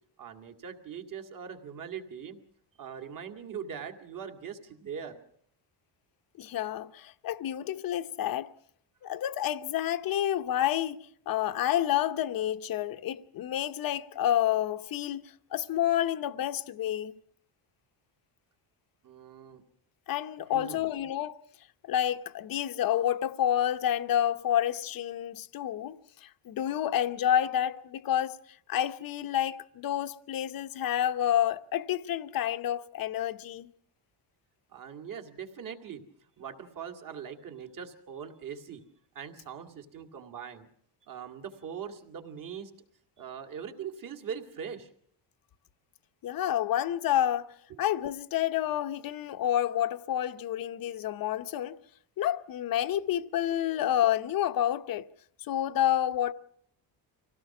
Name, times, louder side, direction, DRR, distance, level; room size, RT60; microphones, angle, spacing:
voice 1, 0.2-2.4 2.8-5.2 19.0-19.6 20.5-20.9 34.7-36.0 36.4-38.8 39.1-40.7 41.0-42.7 43.2-44.9 47.7-47.8, right 7 dB, 45° right, 2.2 m, -41 dB
voice 2, 6.4-8.5 9.0-17.1 20.1-21.4 21.8-28.4 28.7-33.7 46.2-51.8 52.2-55.1 55.4-56.3, left 11 dB, 50° left, 0.9 m, -29 dB
25.5 x 17.0 x 6.0 m
cardioid pair, 175°, 46 cm